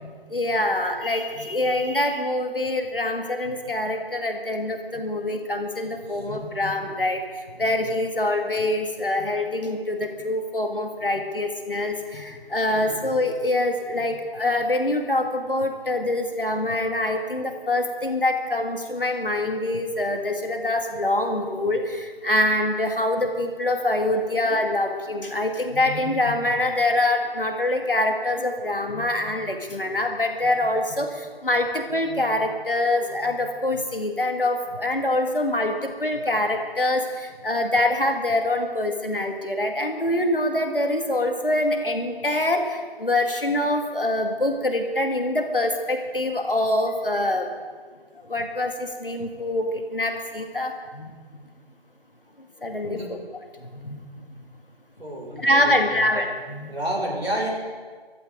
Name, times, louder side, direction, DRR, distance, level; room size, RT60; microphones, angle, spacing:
voice 1, 0.0-47.5 48.3-51.1 52.6-53.2 53.6-54.0 54.3-54.4 55.4-56.8, left 1 dB, 60° left, 4 dB, 2.2 m, -25 dB
voice 2, 12.7-13.0 52.8-53.1 55.0-56.0 56.7-57.5, right 1 dB, 80° right, -2 dB, 5.9 m, -30 dB
23.5 x 14.5 x 3.8 m, 1.5 s
figure-of-eight pair, 175°, 30 cm